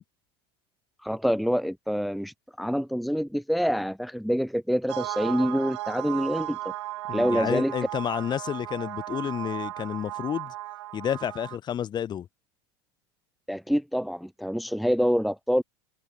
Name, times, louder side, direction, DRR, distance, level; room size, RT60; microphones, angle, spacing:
voice 1, 1.0-6.6 7.1-7.7 13.5-15.6, equal, ahead, 1.3 m, -26 dB
sound 1, 4.9-11.6, right 16 dB, 85° right, 1.5 m, -35 dB
voice 2, 7.1-10.5 10.9-12.3, left 9 dB, 30° left, 2.2 m, -30 dB
supercardioid pair, 125°, 14 cm